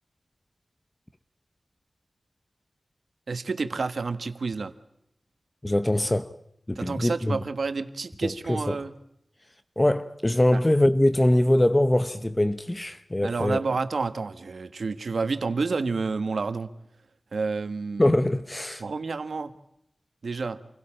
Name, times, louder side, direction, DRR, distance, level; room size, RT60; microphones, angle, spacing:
voice 1, 3.3-4.7 6.7-8.9 10.5-10.6 13.2-16.7 17.3-18.1 18.8-19.5 20.2-20.6, right 4 dB, 80° right, 1.3 m, -29 dB
voice 2, 5.6-6.3 6.7-7.4 8.2-8.8 9.8-13.6 18.0-18.8, left 1 dB, 20° left, 0.8 m, -23 dB
27.5 x 17.0 x 8.7 m
wide cardioid pair, 85°, 0 cm